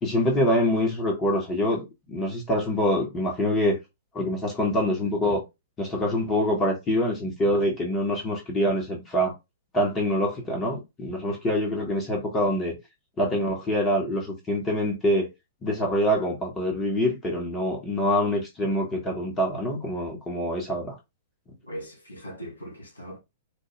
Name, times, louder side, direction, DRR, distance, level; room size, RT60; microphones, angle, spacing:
voice 1, 0.0-3.8 4.1-5.4 5.8-9.3 9.7-12.8 13.2-15.3 15.6-21.0, left 1 dB, 20° left, 1.2 m, -25 dB
voice 2, 21.6-23.2, equal, 75° left, 1.8 m, -39 dB
4.7 x 2.1 x 3.1 m
figure-of-eight pair, 105°, 0 cm